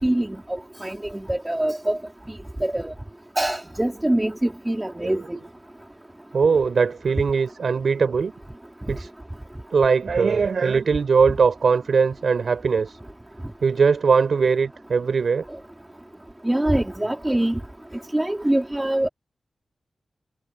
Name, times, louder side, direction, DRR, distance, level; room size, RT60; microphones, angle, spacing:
voice 1, 0.0-0.4 0.8-2.0 2.6-2.9 3.4-5.2 16.4-17.6 18.1-19.1, right 1 dB, 10° right, 4.2 m, -23 dB
voice 2, 5.0-5.4 6.3-8.3 8.9-9.1 9.7-13.0 13.6-15.4, right 5 dB, 65° right, 5.9 m, -20 dB
wide cardioid pair, 160°, 0 cm